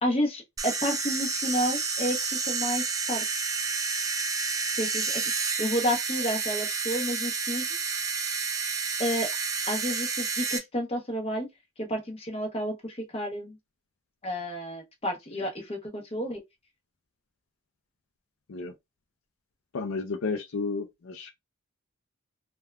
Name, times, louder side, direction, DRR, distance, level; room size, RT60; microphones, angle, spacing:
voice 1, 0.0-3.2 4.8-5.2 5.6-7.7 9.0-9.3 9.7-11.5 11.8-13.6 14.2-16.4, equal, 25° left, 0.8 m, -30 dB
sound 1, 0.6-10.6, right 5 dB, 15° right, 0.3 m, -30 dB
voice 2, 19.7-21.3, left 4 dB, 70° left, 0.5 m, -32 dB
3.4 x 2.3 x 2.2 m
head